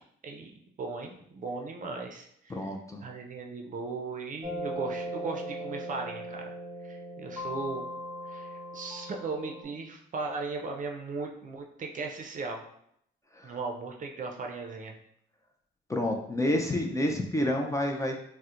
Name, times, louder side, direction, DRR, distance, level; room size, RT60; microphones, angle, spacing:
voice 1, 0.8-2.7 3.0-6.5 6.8-7.8 8.3-12.6 13.4-14.9, right 4 dB, 40° right, 2 dB, 0.5 m, -37 dB
voice 2, 2.5-3.0 13.3-13.6 15.9-18.2, left 1 dB, 15° left, 1 dB, 0.4 m, -29 dB
sound 1, 4.4-9.6, equal, ahead, 1.3 m, -38 dB
4.1 x 2.1 x 2.5 m, 0.71 s
cardioid pair, 90°, 20 cm